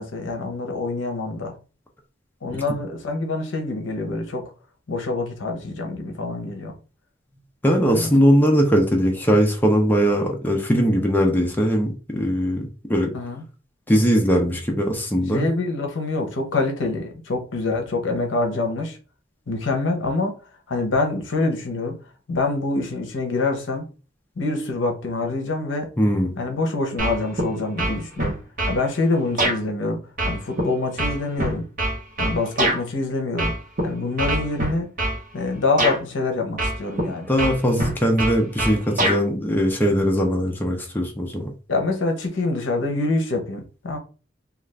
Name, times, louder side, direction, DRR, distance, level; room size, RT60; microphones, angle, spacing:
voice 1, 0.0-1.6 2.4-4.5 4.9-6.7 7.8-8.1 13.1-13.4 15.3-19.0 19.5-20.4 20.7-22.0 22.3-23.9 24.4-25.9 26.4-28.4 28.7-31.7 32.2-33.5 33.8-34.9 35.3-37.3 41.7-44.0, left 3 dB, 75° left, 0.7 m, -25 dB
voice 2, 7.6-12.6 12.9-13.1 13.9-15.5 26.0-26.3 37.3-41.5, equal, 10° left, 0.5 m, -20 dB
sound 1, 27.0-27.5 27.8-28.8 29.4-29.6 30.2-32.8 33.4-33.8 34.2-35.2 35.8-36.0 36.6-37.1 37.4-39.2, right 1 dB, 45° right, 0.9 m, -23 dB
2.5 x 2.3 x 3.2 m
head